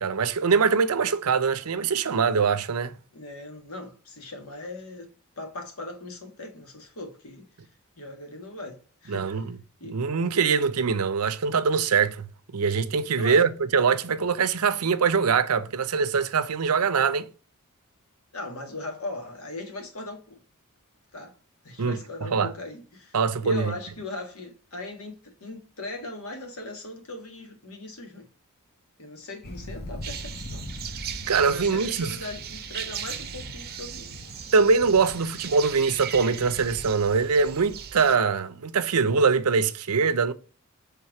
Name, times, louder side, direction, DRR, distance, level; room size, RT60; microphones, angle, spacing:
voice 1, 0.0-3.0 9.1-9.6 9.8-12.3 12.5-17.3 21.8-22.0 22.3-22.5 23.1-23.7 31.3-32.2 34.5-40.3, right 5 dB, 90° right, 0.6 m, -23 dB
voice 2, 3.1-5.1 5.4-7.5 8.0-9.4 9.8-10.0 13.2-13.4 18.3-20.4 21.1-21.3 21.6-23.1 23.4-28.3 29.0-30.7 31.5-34.3, left 2 dB, 70° left, 1.7 m, -39 dB
Thunder, 29.4-37.9, left 1 dB, 45° left, 0.9 m, -42 dB
sound 1, 30.0-38.2, right 9 dB, 45° right, 0.6 m, -38 dB
5.7 x 3.6 x 4.6 m
head